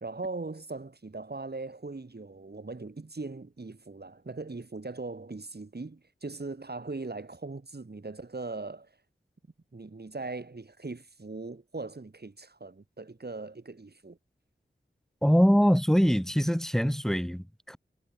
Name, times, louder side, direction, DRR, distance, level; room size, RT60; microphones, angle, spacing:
voice 1, 0.0-8.9 9.7-14.2, right 3 dB, 55° right, 2.5 m, -40 dB
voice 2, 15.2-17.8, equal, ahead, 2.3 m, -23 dB
wide cardioid pair, 55°, 20 cm